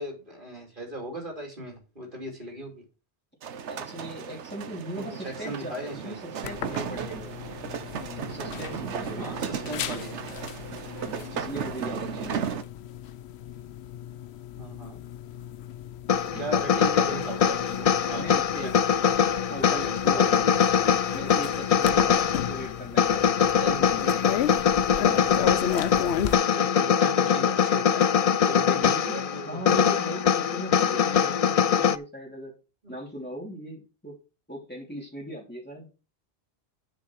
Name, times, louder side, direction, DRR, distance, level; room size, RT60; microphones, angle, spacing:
voice 1, 0.0-2.8 4.9-6.2 9.2-10.3 11.3-11.5 14.6-15.0 16.2-18.2 18.6-18.7 19.7-20.5 23.6-23.9 26.2-28.1 28.5-29.6 31.2-31.3 32.8-32.9, right 1 dB, 50° right, 0 dB, 2.9 m, -38 dB
sound 1, 3.4-12.6, right 7 dB, 80° right, 1.1 m, -35 dB
voice 2, 3.7-7.3 8.3-9.4 9.9-10.0 11.1-12.5 16.3-16.4 18.1-18.7 19.5-20.3 21.1-23.5 24.0-24.1 25.0-25.9 28.7-29.2 29.5-32.5 32.9-34.2 34.5-35.9, right 1 dB, 10° left, -3 dB, 3.3 m, -39 dB
sound 2, 6.4-26.3, left 10 dB, 75° left, 0.9 m, -36 dB
sound 3, 16.1-32.0, left 8 dB, 55° left, 0.4 m, -23 dB
9.7 x 6.1 x 4.6 m, 0.33 s
omnidirectional pair, 1.2 m